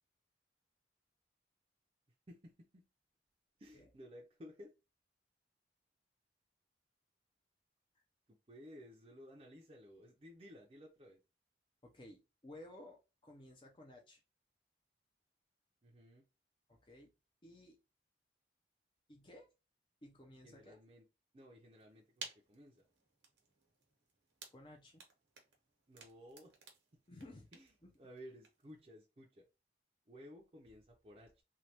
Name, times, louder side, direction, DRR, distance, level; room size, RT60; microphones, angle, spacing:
voice 1, 2.3-2.8 3.6-4.7 8.5-11.2 15.8-16.2 20.4-21.1 21.3-22.8 25.9-26.6 26.9-27.0 27.5-29.4 30.1-31.4, equal, 30° right, 0.5 m, -56 dB
voice 2, 11.8-14.2 16.7-17.1 17.4-17.8 19.1-19.5 20.0-20.8 24.5-25.0 27.1-27.5 27.8-27.9, left 1 dB, 30° left, 0.5 m, -56 dB
sound 1, 21.7-28.8, right 5 dB, 85° right, 0.9 m, -56 dB
3.2 x 2.2 x 2.8 m
head